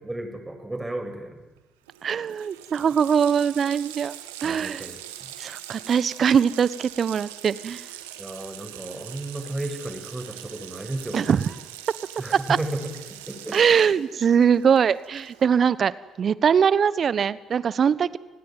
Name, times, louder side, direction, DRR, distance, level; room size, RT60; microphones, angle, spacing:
voice 1, 0.0-1.4 4.4-5.0 8.2-11.4 12.2-12.8 13.1-13.6, right 2 dB, 15° right, 6 dB, 7.2 m, -33 dB
Water tap faucet, 1.6-1.7 1.9-15.6, right 13 dB, 80° right, 2.0 m, -42 dB
voice 2, 2.0-4.1 4.4-4.9 5.4-7.8 11.1-11.5 12.3-12.4 13.5-18.2, right 7 dB, 50° right, 18 dB, 1.2 m, -21 dB
29.5 x 19.5 x 9.4 m, 1.2 s
hypercardioid pair, 50°, 0 cm